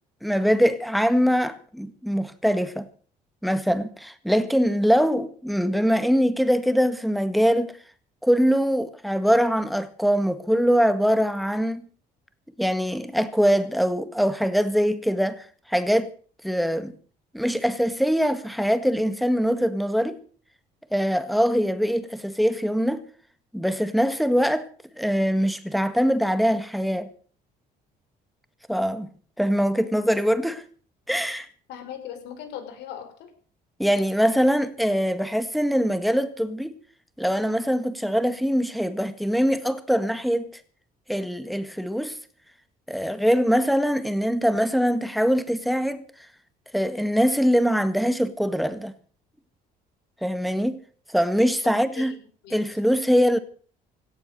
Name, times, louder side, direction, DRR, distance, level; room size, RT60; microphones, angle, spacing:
voice 1, 0.2-2.9 3.4-7.7 8.2-11.9 12.6-16.1 16.4-16.9 17.3-20.2 20.9-23.1 23.5-24.7 25.0-27.1 28.7-29.1 29.4-30.6 31.1-31.5 33.8-36.7 37.2-40.5 41.1-42.2 42.9-46.0 46.7-48.9 50.2-50.8 51.1-52.1 52.5-53.4, equal, ahead, 1.8 m, -23 dB
voice 2, 31.7-33.1 51.6-52.6, left 9 dB, 85° left, 4.9 m, -39 dB
17.0 x 12.5 x 6.7 m
cardioid pair, 110°, 17 cm